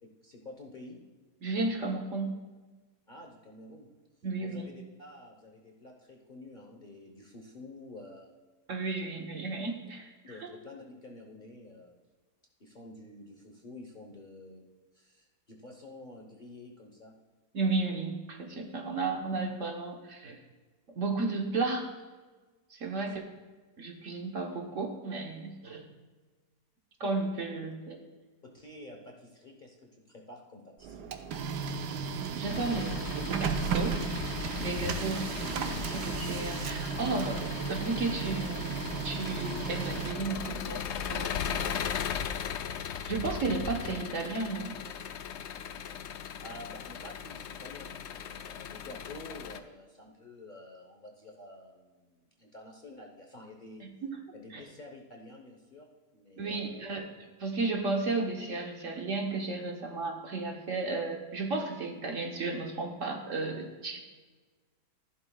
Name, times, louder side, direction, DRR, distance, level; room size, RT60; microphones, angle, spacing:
voice 1, 0.0-1.0 3.1-3.9 4.4-8.3 10.2-12.0 12.6-14.6 14.9-17.2 22.8-23.0 28.4-31.1 46.4-53.9 54.3-56.9, left 2 dB, 35° left, 0 dB, 1.0 m, -49 dB
voice 2, 1.4-2.5 4.2-4.7 8.7-10.5 17.5-20.4 20.9-21.9 22.7-23.2 23.8-25.9 27.0-28.0 32.0-34.0 34.6-41.9 43.0-44.7 53.8-54.2 54.5-54.6 56.4-57.1 57.4-64.0, right 3 dB, 55° right, 2 dB, 1.3 m, -34 dB
Printer, 30.8-40.6, right 6 dB, 80° right, 1.3 m, -35 dB
Engine, 32.5-49.6, left 7 dB, 75° left, 0.6 m, -38 dB
14.5 x 11.0 x 2.3 m, 1.3 s
omnidirectional pair, 1.7 m